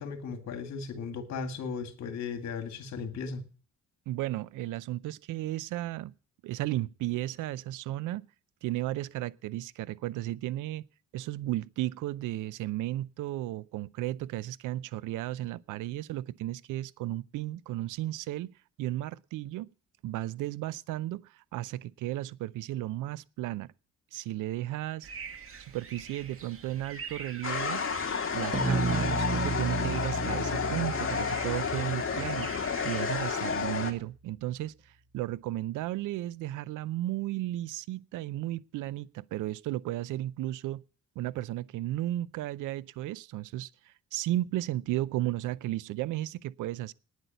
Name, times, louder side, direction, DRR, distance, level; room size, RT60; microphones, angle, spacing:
voice 1, 0.0-3.4, left 5 dB, 60° left, 2.2 m, -36 dB
voice 2, 4.1-6.1 6.4-8.2 8.6-10.9 11.1-18.5 18.8-19.7 20.0-23.7 24.1-25.1 25.7-27.8 28.3-32.5 32.8-34.7 35.1-40.8 41.2-43.7 44.1-46.9, right 15 dB, 85° right, 0.6 m, -34 dB
sound 1, 25.0-33.4, right 6 dB, 45° right, 2.1 m, -46 dB
sound 2, 27.4-33.9, left 6 dB, 45° left, 2.1 m, -31 dB
sound 3, 28.5-33.1, right 3 dB, 25° right, 1.6 m, -33 dB
9.9 x 8.1 x 9.1 m
cardioid pair, 90°, 30 cm